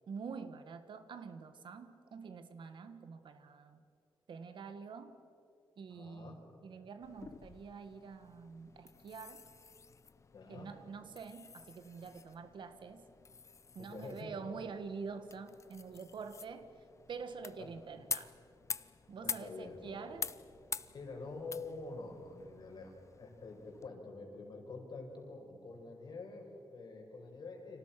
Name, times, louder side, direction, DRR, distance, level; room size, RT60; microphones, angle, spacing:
voice 1, 0.1-3.9 4.3-5.2 5.8-9.5 10.5-13.0 13.8-16.7 17.1-18.4 19.1-20.3, right 5 dB, 70° right, 10 dB, 1.7 m, -46 dB
voice 2, 5.9-6.4 10.3-10.7 13.8-14.3 19.2-20.1 20.9-27.8, left 3 dB, 60° left, 2 dB, 5.6 m, -47 dB
sound 1, 7.0-23.9, left 5 dB, 35° left, 0.6 m, -47 dB
30.0 x 26.5 x 6.0 m, 2.6 s
wide cardioid pair, 165°, 9 cm